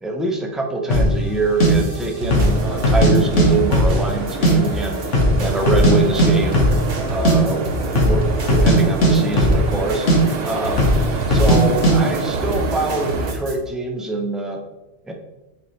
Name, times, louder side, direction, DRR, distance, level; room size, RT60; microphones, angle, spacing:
voice 1, 0.0-5.0 5.4-6.6 7.1-7.6 8.0-10.9 11.3-14.6 15.0-15.1, right 2 dB, ahead, 1 dB, 0.5 m, -24 dB
sound 1, 0.9-1.1 1.6-1.7 2.2-2.5 2.8-3.5 3.7-4.5 4.8-4.9 5.1-5.9 6.2-6.3 6.5-6.8 7.1-7.4 7.9-8.2 8.5-9.8 10.1-10.2 10.8-11.0 11.3-11.6 11.8-12.0, equal, 85° left, 1.7 m, -15 dB
sound 2, 1.6-13.5, right 1 dB, 75° right, 1.3 m, -29 dB
sound 3, 2.2-13.3, right 3 dB, 60° right, 0.9 m, -28 dB
6.9 x 4.5 x 3.1 m, 1.0 s
omnidirectional pair, 1.2 m